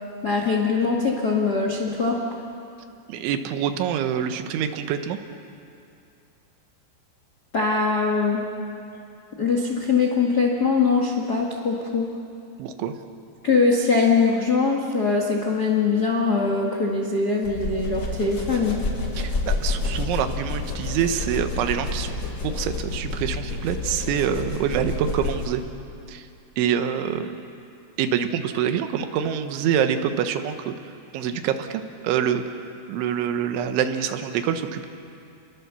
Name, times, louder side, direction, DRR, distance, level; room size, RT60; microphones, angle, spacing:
voice 1, 0.2-2.2 7.5-8.4 9.4-12.1 13.4-18.8, left 4 dB, 85° left, 0 dB, 0.8 m, -22 dB
voice 2, 3.1-5.2 12.6-12.9 19.2-25.6 26.1-26.3 26.6-27.4 28.0-30.7 31.1-34.9, right 8 dB, 85° right, 8 dB, 3.5 m, -26 dB
sound 1, 17.4-25.7, left 3 dB, 30° left, 2.0 m, -29 dB
29.5 x 22.0 x 6.9 m, 2.6 s
omnidirectional pair, 5.3 m